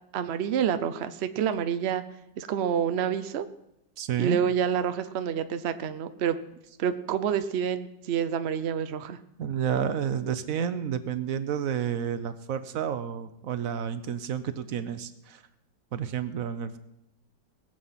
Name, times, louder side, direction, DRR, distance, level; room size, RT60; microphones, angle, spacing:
voice 1, 0.1-2.0 2.4-3.4 4.2-6.4 6.8-9.2, right 8 dB, 75° right, 11 dB, 0.6 m, -28 dB
voice 2, 4.0-4.4 9.4-15.4 15.9-16.8, right 8 dB, 60° right, 12 dB, 1.0 m, -30 dB
20.0 x 7.7 x 5.7 m, 0.84 s
omnidirectional pair, 2.0 m